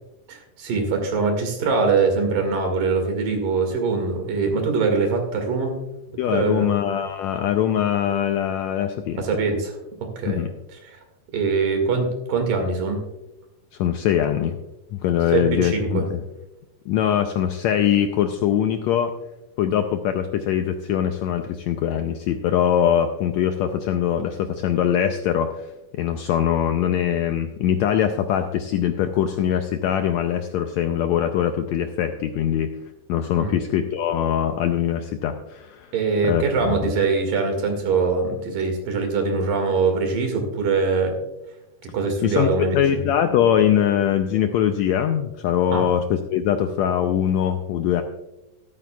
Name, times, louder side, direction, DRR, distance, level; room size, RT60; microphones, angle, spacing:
voice 1, 0.3-5.7 6.3-6.7 9.2-9.7 10.2-10.4 10.9-11.0 11.3-13.0 15.3-16.1 33.4-33.6 35.9-41.1 41.9-43.0 45.7-45.9, right 4 dB, 85° right, 4 dB, 3.7 m, -23 dB
voice 2, 6.2-9.2 10.3-10.5 13.7-14.6 14.9-16.2 16.9-19.1 19.6-25.7 25.9-32.7 33.1-35.9 36.2-36.9 42.2-48.0, left 9 dB, 85° left, 6 dB, 1.6 m, -22 dB
13.5 x 13.0 x 2.3 m, 0.95 s
omnidirectional pair, 3.8 m